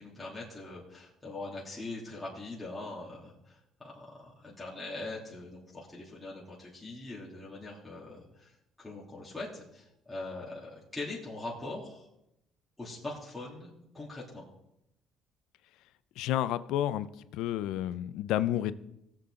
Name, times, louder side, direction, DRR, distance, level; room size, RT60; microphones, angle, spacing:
voice 1, 0.0-12.1 12.8-14.4, left 2 dB, 10° left, -7 dB, 3.1 m, -42 dB
voice 2, 16.2-18.7, left 12 dB, 85° left, 15 dB, 0.5 m, -30 dB
19.0 x 7.6 x 3.8 m, 0.83 s
cardioid pair, 120°, 0 cm